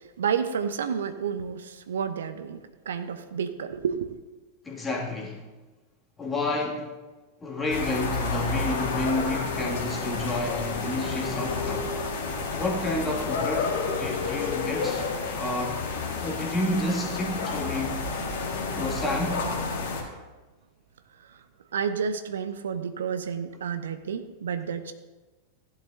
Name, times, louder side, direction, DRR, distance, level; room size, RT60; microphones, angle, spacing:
voice 1, 0.2-4.2 21.2-21.4 21.7-24.9, right 7 dB, 65° right, 9 dB, 0.8 m, -30 dB
voice 2, 4.6-5.4 6.2-7.0 7.4-11.9 12.5-15.0 15.4-15.8 16.2-18.0 18.7-19.5, left 2 dB, 15° left, -2 dB, 2.4 m, -30 dB
sound 1, 7.7-20.0, left 4 dB, 50° left, 1.8 m, -30 dB
16.0 x 11.5 x 2.8 m, 1.2 s
figure-of-eight pair, 90°, 0 cm